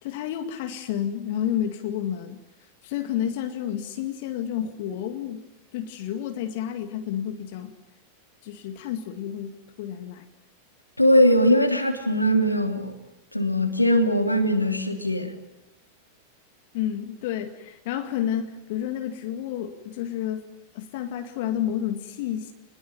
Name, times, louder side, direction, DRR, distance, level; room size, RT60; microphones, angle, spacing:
voice 1, 0.0-2.4 2.8-5.4 5.7-7.7 8.4-10.3 16.7-20.5 20.7-22.5, left 10 dB, 50° left, 2.1 m, -30 dB
voice 2, 11.0-12.9 13.3-15.3, equal, 85° left, 3.0 m, -20 dB
28.0 x 21.0 x 9.5 m
figure-of-eight pair, 90°, 0 cm